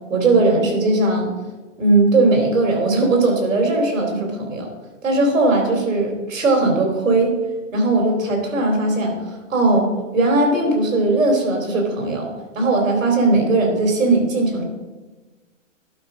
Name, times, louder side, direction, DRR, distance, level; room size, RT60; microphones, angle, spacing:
voice 1, 0.1-1.3 1.8-4.7 5.0-7.3 7.7-12.3 12.5-14.6, right 2 dB, 80° right, 2 dB, 3.2 m, -18 dB
11.5 x 4.9 x 5.0 m, 1.2 s
hypercardioid pair, 160°, 39 cm